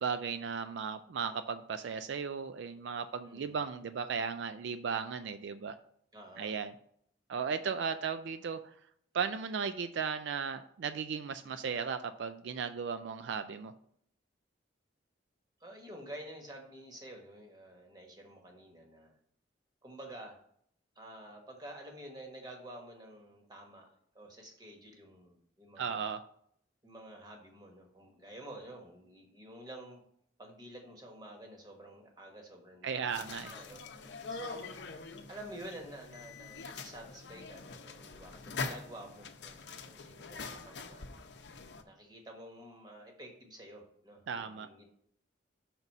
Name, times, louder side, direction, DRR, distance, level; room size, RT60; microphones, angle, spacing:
voice 1, 0.0-5.8 6.4-6.7 7.3-8.7 9.1-13.7 25.8-26.2 32.8-33.5 44.3-44.7, right 6 dB, 75° right, 10 dB, 0.4 m, -36 dB
voice 2, 3.2-3.6 6.1-6.5 15.6-19.2 19.8-20.4 20.9-23.9 24.1-26.1 26.8-30.0 30.4-33.8 34.3-34.7 35.3-41.1 41.9-44.9, right 1 dB, 20° right, 1 dB, 1.3 m, -50 dB
sound 1, 33.1-41.8, left 4 dB, 65° left, 0.6 m, -44 dB
5.9 x 4.0 x 5.4 m, 0.66 s
head